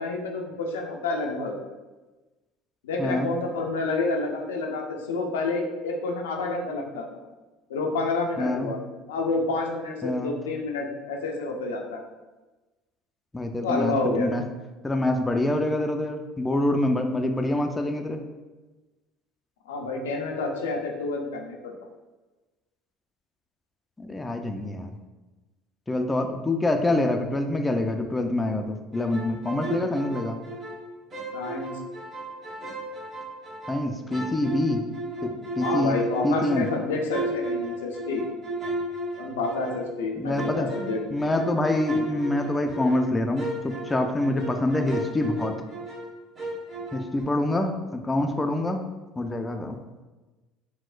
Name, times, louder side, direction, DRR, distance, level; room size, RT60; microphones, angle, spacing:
voice 1, 0.0-1.6 2.8-7.2 7.7-8.8 9.1-12.0 13.6-14.3 19.7-21.7 31.3-31.8 35.6-38.2 39.1-41.0, left 3 dB, 85° left, 1 dB, 0.4 m, -29 dB
voice 2, 3.0-3.3 8.4-8.7 10.0-10.3 13.3-14.4 14.8-18.2 24.0-25.0 25.9-30.4 33.7-34.9 35.2-36.0 36.2-36.7 40.2-40.7 41.1-45.5 46.9-48.8 49.2-49.8, left 1 dB, 15° left, 4 dB, 0.3 m, -26 dB
sound 1, 28.9-30.8 31.1-33.8 34.1-39.9 40.4-46.1 46.4-47.2, right 1 dB, 35° right, 1.1 m, -34 dB
4.1 x 2.1 x 2.4 m, 1.2 s
hypercardioid pair, 75°, 0 cm